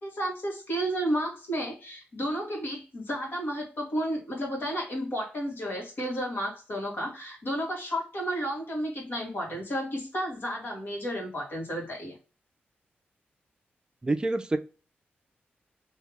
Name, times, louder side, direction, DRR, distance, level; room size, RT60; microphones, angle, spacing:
voice 1, 0.0-12.2, equal, 60° left, 1.9 m, -32 dB
voice 2, 14.0-14.6, right 2 dB, 20° right, 0.5 m, -26 dB
3.2 x 2.8 x 3.4 m
wide cardioid pair, 105°, 4 cm